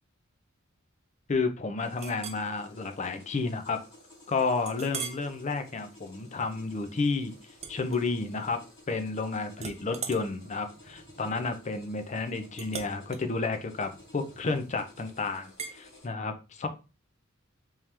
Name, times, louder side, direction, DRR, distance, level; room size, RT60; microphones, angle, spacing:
voice 1, 1.3-3.8 4.3-7.3 7.7-16.7, left 4 dB, 35° left, 8 dB, 0.5 m, -31 dB
sound 1, 1.8-16.1, left 1 dB, 60° left, 2.3 m, -55 dB
Chink clink, 2.0-2.5 3.0-3.2 3.6-3.7 4.7-5.3 5.8-6.1 7.6-8.5 8.8-9.2 9.6-14.7 15.6-15.8, right 6 dB, 30° right, 0.4 m, -42 dB
3.6 x 2.9 x 3.2 m, 0.31 s
head